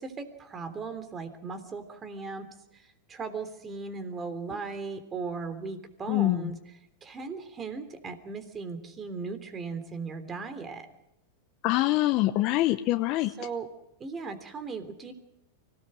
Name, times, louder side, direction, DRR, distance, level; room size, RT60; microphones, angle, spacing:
voice 1, 0.0-2.4 2.7-6.6 7.0-10.9 13.4-13.7 14.0-15.1, right 4 dB, 25° right, 10 dB, 3.3 m, -37 dB
voice 2, 6.1-6.4 11.6-13.3, left 16 dB, 45° left, 9 dB, 0.8 m, -24 dB
24.5 x 18.0 x 6.4 m, 0.87 s
hypercardioid pair, 110°, 0 cm